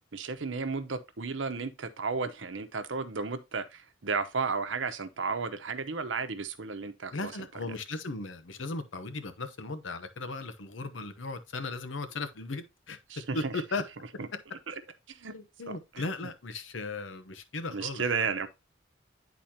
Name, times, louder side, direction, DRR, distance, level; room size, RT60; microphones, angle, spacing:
voice 1, 0.1-7.3 7.7-7.8 13.1-13.5 14.2-14.3 14.7-14.8 15.1-15.3 15.7-16.0 17.7-18.5, right 4 dB, 90° right, 0.9 m, -33 dB
voice 2, 7.1-13.0 13.3-13.8 15.3-18.3, left 3 dB, 90° left, 0.9 m, -37 dB
10.0 x 4.1 x 2.8 m
head